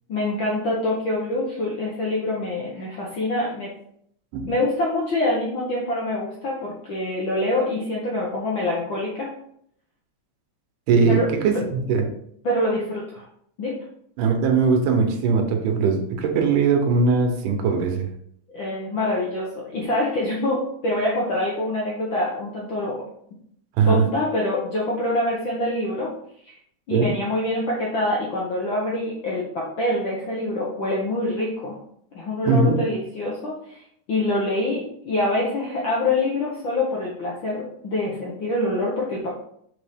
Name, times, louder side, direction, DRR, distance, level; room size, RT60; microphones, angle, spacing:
voice 1, 0.1-3.7 4.5-9.3 11.1-11.3 11.5-11.6 12.4-13.2 13.6-13.8 18.5-23.0 23.9-26.1 26.5-26.6 26.9-31.8 32.1-33.8 34.1-39.3, left 1 dB, 65° left, -4 dB, 1.2 m, -25 dB
voice 2, 10.9-12.0 14.2-18.1 23.8-24.0 26.9-27.1 32.4-32.8, right 4 dB, 90° right, 4 dB, 2.5 m, -20 dB
6.5 x 4.3 x 3.5 m, 0.69 s
omnidirectional pair, 3.6 m